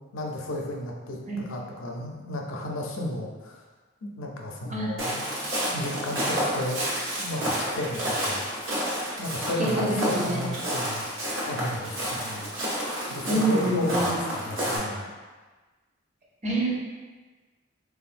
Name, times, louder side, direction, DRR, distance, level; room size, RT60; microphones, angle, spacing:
voice 1, 0.1-1.2 1.5-3.6 4.0-5.3 5.7-8.5 9.2-11.1 11.4-12.5 13.1-15.1, left 1 dB, 85° left, 0 dB, 0.5 m, -33 dB
Walk footsteps, 5.0-14.8, equal, 70° right, 0.9 m, -30 dB
voice 2, 9.6-10.5 13.2-14.2 16.4-16.7, right 1 dB, 35° right, -4 dB, 0.6 m, -26 dB
3.4 x 2.4 x 2.5 m, 1.3 s
head